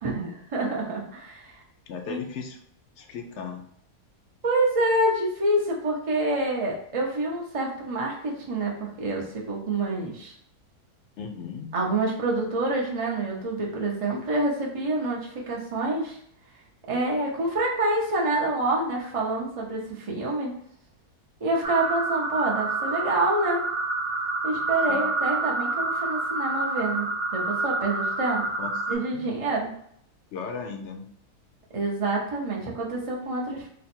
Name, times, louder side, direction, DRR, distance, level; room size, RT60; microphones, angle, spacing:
voice 1, 0.0-1.6 2.1-2.2 4.4-10.3 11.7-16.2 16.9-20.5 21.4-23.6 24.4-28.4 28.9-29.7 31.7-33.7, right 2 dB, 50° right, -2 dB, 0.4 m, -27 dB
voice 2, 1.9-2.6 3.0-3.6 11.2-11.7 24.9-25.0 28.6-28.7 29.1-29.3 30.3-31.1, left 5 dB, 70° left, 4 dB, 0.7 m, -36 dB
sound 1, 21.6-28.9, right 3 dB, 70° right, 1.1 m, -28 dB
3.3 x 2.1 x 4.3 m, 0.67 s
omnidirectional pair, 1.6 m